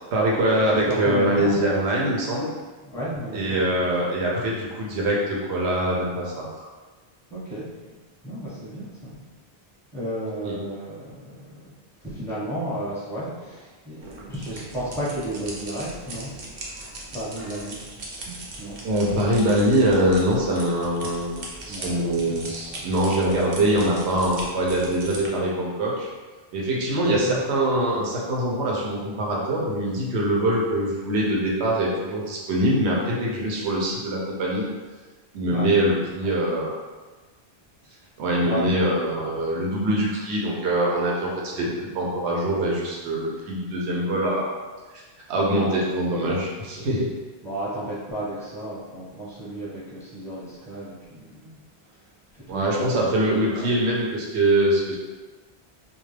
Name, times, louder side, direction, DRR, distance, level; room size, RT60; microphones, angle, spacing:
voice 1, 0.1-2.5 3.3-6.7 10.4-10.6 18.8-21.4 21.7-26.1 26.5-34.7 35.3-36.8 38.2-41.7 41.9-44.5 45.3-47.1 52.5-55.0, right 1 dB, 85° right, -3 dB, 0.9 m, -23 dB
voice 2, 0.7-1.6 2.8-3.9 7.3-8.0 8.2-9.2 9.9-11.6 12.0-16.3 17.1-17.8 18.6-18.8 21.7-22.3 22.7-22.8 27.1-27.3 35.5-35.7 38.4-39.7 41.7-41.9 45.6-46.0 47.4-51.6 52.3-53.0 53.5-53.8, right 1 dB, 5° left, -10 dB, 0.8 m, -33 dB
sound 1, 14.0-25.3, right 2 dB, 55° right, 0.6 m, -39 dB
2.3 x 2.1 x 3.1 m, 1.3 s
omnidirectional pair, 1.1 m